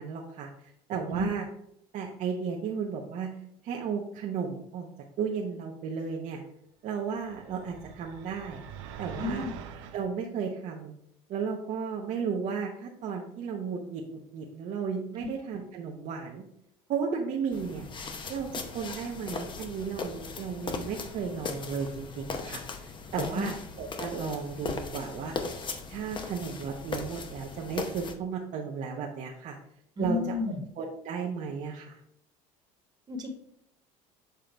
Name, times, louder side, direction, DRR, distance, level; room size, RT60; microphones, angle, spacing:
voice 1, 0.0-1.4 1.9-3.3 3.6-4.9 5.2-6.4 6.8-8.6 9.0-9.5 9.9-10.9 11.3-16.4 16.9-17.9 18.3-25.4 25.9-29.6 30.0-30.2 30.8-32.0, right 6 dB, 50° right, 0 dB, 0.8 m, -34 dB
sound 1, 7.2-10.1, right 8 dB, 90° right, 0.7 m, -44 dB
voice 2, 9.1-9.5 23.2-23.5 30.0-30.6 33.1-33.3, left 3 dB, 25° right, 1 dB, 1.3 m, -32 dB
sound 2, 17.5-28.1, left 4 dB, 30° left, 0.8 m, -38 dB
6.8 x 3.8 x 4.4 m, 0.77 s
supercardioid pair, 110°, 16 cm